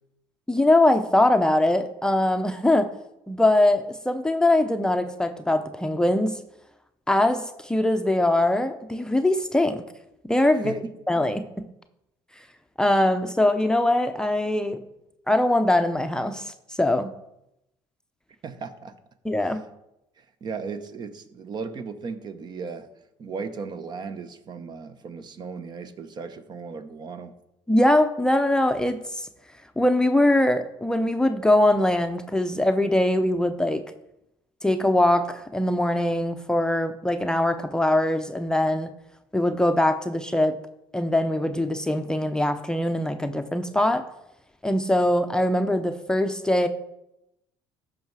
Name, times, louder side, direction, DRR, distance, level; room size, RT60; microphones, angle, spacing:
voice 1, 0.5-2.9 3.3-6.4 7.1-9.8 10.2-10.8 11.1-11.7 12.8-14.8 15.3-17.1 19.2-19.6 27.7-29.2 29.8-33.8 34.6-38.9 39.3-40.6 40.9-44.1 44.6-46.7, left 1 dB, 5° left, 7 dB, 0.6 m, -22 dB
voice 2, 10.5-10.9 18.4-19.0 19.4-19.5 20.2-22.9 23.2-27.4, right 5 dB, 45° right, 11 dB, 0.9 m, -36 dB
14.0 x 5.6 x 4.7 m, 0.86 s
cardioid pair, 100°, 10 cm